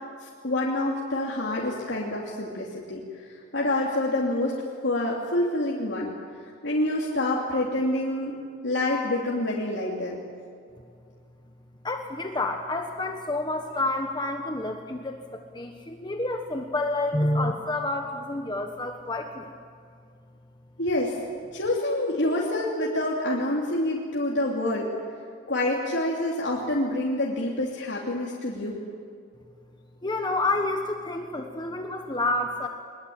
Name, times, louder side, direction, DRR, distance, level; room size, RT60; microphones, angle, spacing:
voice 1, 0.2-6.1 6.6-10.2 20.8-21.2 21.5-24.9 25.5-28.8, left 1 dB, 70° left, -3 dB, 3.2 m, -27 dB
voice 2, 11.8-19.5 30.0-32.7, left 2 dB, 25° left, 4 dB, 1.3 m, -29 dB
22.5 x 22.0 x 8.9 m, 2.3 s
head